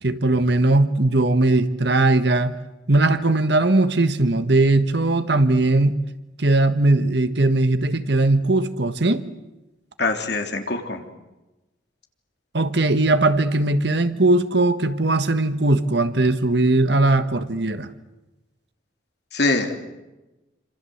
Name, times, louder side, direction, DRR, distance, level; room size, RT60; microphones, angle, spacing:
voice 1, 0.0-2.6 2.9-5.9 6.4-9.2 12.5-17.9, right 2 dB, 60° right, 10 dB, 1.5 m, -19 dB
voice 2, 10.0-11.0 19.3-19.7, left 3 dB, 60° left, 4 dB, 3.5 m, -23 dB
27.5 x 26.5 x 8.0 m, 1.0 s
head